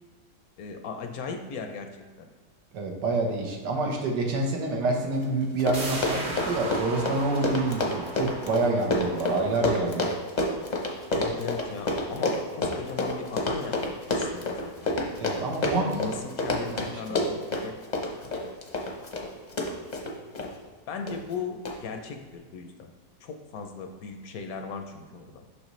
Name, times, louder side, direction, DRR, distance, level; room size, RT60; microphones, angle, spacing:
voice 1, 0.6-1.9 2.2-2.3 11.1-14.9 15.6-17.7 20.9-22.9 23.2-25.4, left 5 dB, 70° left, 5 dB, 1.0 m, -37 dB
voice 2, 2.7-10.1 15.2-15.9 16.7-16.8, right 2 dB, 90° right, 1 dB, 1.6 m, -27 dB
Run, 5.2-5.3 5.5-20.5 21.1-21.3 21.7-21.8, left 2 dB, 40° left, 0.6 m, -29 dB
sound 1, 5.7-11.2 11.6-11.7, right 2 dB, 40° right, 0.8 m, -38 dB
6.5 x 5.5 x 3.1 m, 1.5 s
omnidirectional pair, 1.8 m